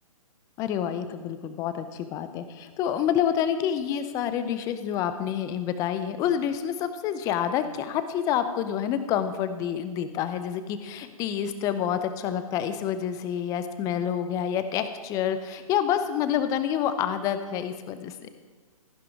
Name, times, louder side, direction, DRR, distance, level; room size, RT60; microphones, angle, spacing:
voice 1, 0.6-18.1, left 9 dB, 20° left, 10 dB, 0.6 m, -28 dB
14.0 x 10.5 x 3.6 m, 1.4 s
figure-of-eight pair, 130°, 19 cm